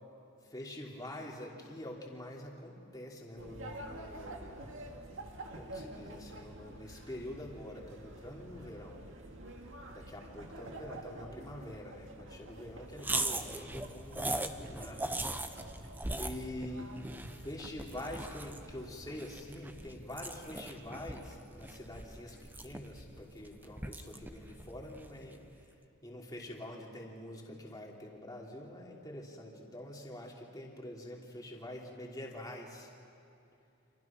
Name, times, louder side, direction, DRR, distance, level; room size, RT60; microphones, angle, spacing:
voice 1, 0.4-4.8 5.5-9.0 9.9-15.1 16.1-16.9 17.3-25.7 26.0-32.9, left 1 dB, 15° left, -2 dB, 3.1 m, -46 dB
sound 1, 3.4-18.9, right 1 dB, 60° right, 2.3 m, -49 dB
sound 2, 13.0-25.5, right 2 dB, 10° right, 0.8 m, -40 dB
30.0 x 27.0 x 6.1 m, 2.7 s
head